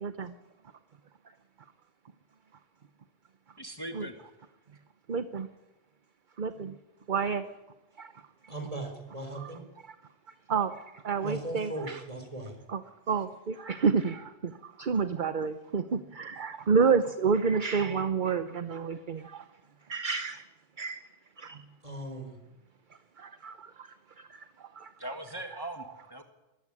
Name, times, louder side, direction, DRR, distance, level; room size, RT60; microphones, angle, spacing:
voice 1, 3.6-4.2 25.0-26.2, right 1 dB, 20° left, 5 dB, 1.6 m, -40 dB
voice 2, 5.1-5.5 6.4-6.7 7.1-7.4 9.4-9.5 10.5-10.7 11.0-12.0 12.7-12.8 13.1-14.2 14.8-19.2 19.9-20.4 20.8-21.0 21.4-21.6 23.4-23.5, right 5 dB, 45° right, 11 dB, 0.9 m, -28 dB
voice 3, 8.5-9.6 11.2-12.5 21.8-22.4, right 2 dB, 30° right, 5 dB, 4.0 m, -38 dB
22.0 x 14.5 x 9.9 m, 1.0 s
omnidirectional pair, 1.3 m